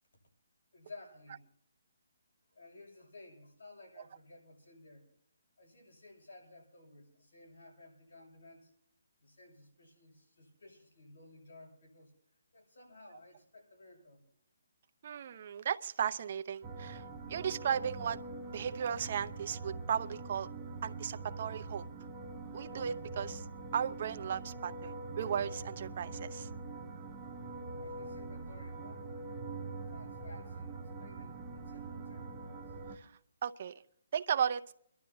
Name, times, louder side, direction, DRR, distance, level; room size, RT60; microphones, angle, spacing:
voice 1, 0.7-1.4 2.5-5.1 5.6-8.7 9.2-12.1 12.5-14.2 27.5-29.1 29.9-32.7, left 2 dB, 80° left, 0 dB, 7.4 m, -56 dB
voice 2, 15.0-17.0 17.3-18.2 18.5-20.5 20.8-21.8 22.5-23.5 23.7-26.5 32.9-33.1 33.4-33.7 34.1-34.6, right 8 dB, 40° right, 10 dB, 0.7 m, -35 dB
sound 1, 16.6-33.0, right 3 dB, 15° right, 1.1 m, -44 dB
29.5 x 12.0 x 3.0 m, 0.70 s
hypercardioid pair, 170°, 0 cm